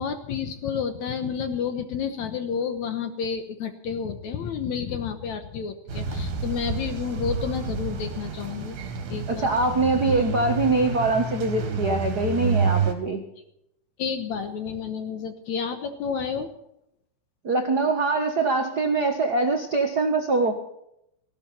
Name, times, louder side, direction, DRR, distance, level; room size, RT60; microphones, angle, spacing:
voice 1, 0.0-8.8 9.1-9.5 14.0-16.5, left 6 dB, 65° left, 8 dB, 2.0 m, -30 dB
sound 1, 5.9-12.9, right 4 dB, 75° right, 4.0 m, -29 dB
voice 2, 9.3-13.2 17.4-20.5, right 3 dB, 55° right, 4 dB, 1.0 m, -23 dB
18.5 x 16.0 x 4.3 m, 0.77 s
omnidirectional pair, 4.2 m